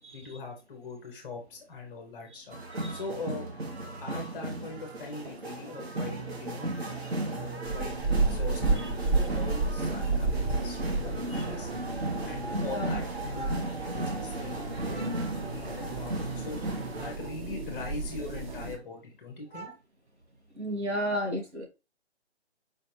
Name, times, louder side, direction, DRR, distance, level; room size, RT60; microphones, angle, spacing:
voice 1, 0.1-2.6 2.9-3.5 4.0-6.7 7.2-11.7 12.2-15.2 15.5-16.6 17.0-19.7, left 4 dB, 5° left, 0.6 m, -42 dB
sound 1, 2.5-17.2, right 2 dB, 65° right, 1.5 m, -36 dB
sound 2, 5.2-12.7, right 1 dB, 25° right, 0.8 m, -49 dB
sound 3, 7.6-18.8, right 3 dB, 45° right, 1.1 m, -32 dB
voice 2, 12.5-12.9 13.4-13.5 15.0-15.3 19.5-19.7 20.6-21.7, equal, 90° right, 2.0 m, -34 dB
4.9 x 3.2 x 2.9 m
hypercardioid pair, 155°, 33 cm